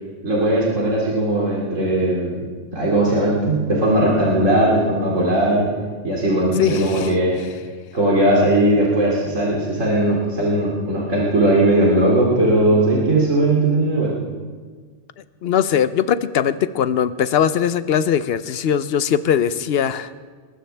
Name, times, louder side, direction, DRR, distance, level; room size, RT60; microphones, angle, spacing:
voice 1, 0.2-2.5 2.7-5.7 6.0-7.4 7.9-14.1, right 1 dB, 90° right, -5 dB, 3.0 m, -18 dB
voice 2, 6.6-7.1 15.4-20.1, left 8 dB, 60° left, 14 dB, 0.8 m, -20 dB
21.5 x 20.0 x 3.4 m, 1.5 s
omnidirectional pair, 1.3 m